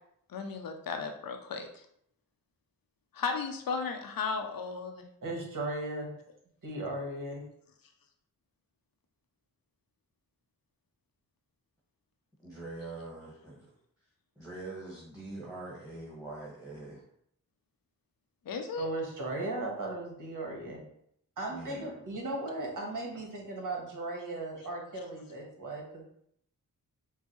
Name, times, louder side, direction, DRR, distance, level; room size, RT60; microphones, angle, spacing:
voice 1, 0.3-1.8 3.1-5.0 18.4-18.9, left 4 dB, 65° left, 5 dB, 0.7 m, -35 dB
voice 2, 5.2-6.1 6.6-7.4 18.8-20.8 21.4-26.0, right 2 dB, 55° right, -1 dB, 1.4 m, -37 dB
voice 3, 12.4-13.7 14.3-17.0 21.5-22.0, right 2 dB, 5° right, -7 dB, 1.6 m, -43 dB
5.3 x 2.1 x 3.1 m, 0.70 s
cardioid pair, 50°, 37 cm